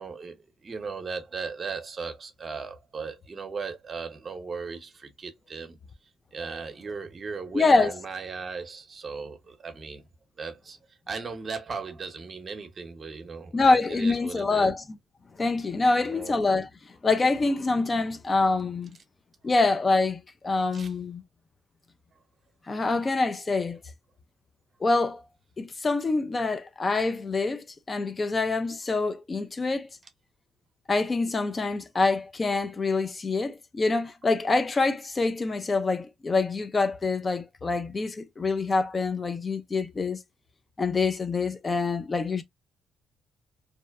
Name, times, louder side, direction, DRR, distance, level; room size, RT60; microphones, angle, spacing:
voice 1, 0.0-5.8 6.3-10.0 10.4-10.8 11.1-14.7 16.0-16.4 20.7-20.9, right 5 dB, 40° right, 0.7 m, -37 dB
voice 2, 7.5-8.0 13.5-14.8 15.4-16.7 17.0-18.9 19.4-21.2 22.7-23.8 24.8-25.3 25.6-29.9 30.9-40.2 40.8-42.4, left 3 dB, 30° left, 0.4 m, -25 dB
2.6 x 2.1 x 2.3 m
cardioid pair, 90°, 0 cm